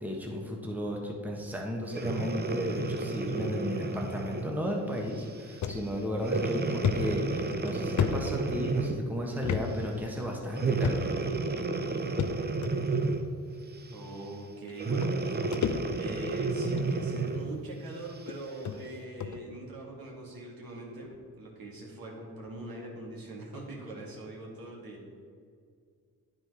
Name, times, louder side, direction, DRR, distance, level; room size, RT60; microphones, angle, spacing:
voice 1, 0.0-11.1, left 1 dB, 5° right, 0 dB, 1.2 m, -34 dB
Breathing, 1.9-4.6 5.2-5.4 6.2-9.1 10.5-13.4 14.8-17.5 18.2-18.3, right 3 dB, 25° right, 0.7 m, -31 dB
sound 1, 5.6-5.8 6.2-6.3 6.8-8.9 9.4-9.6 9.9-10.1 10.8-11.3 12.2-12.7 13.6-13.7 14.7-14.8 15.0-16.2 16.6-16.9 17.7-17.8 18.3-18.4 18.6-18.8 19.2-19.4, left 8 dB, 50° left, 0.6 m, -32 dB
voice 2, 13.9-15.4 16.0-25.0, right 2 dB, 65° right, -2 dB, 2.0 m, -42 dB
9.4 x 4.4 x 4.8 m, 2.2 s
supercardioid pair, 55°, 38 cm